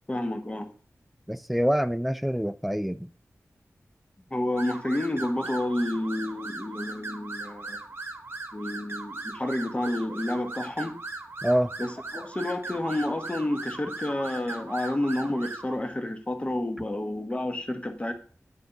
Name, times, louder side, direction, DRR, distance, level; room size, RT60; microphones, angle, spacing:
voice 1, 0.1-0.7 4.3-7.8 8.5-11.0 11.8-18.1, left 1 dB, 25° left, 0.9 m, -30 dB
voice 2, 1.3-3.1 11.4-11.7, equal, ahead, 0.4 m, -26 dB
sound 1, 4.6-15.8, right 3 dB, 50° right, 1.0 m, -39 dB
9.1 x 3.4 x 3.9 m
wide cardioid pair, 70°, 5 cm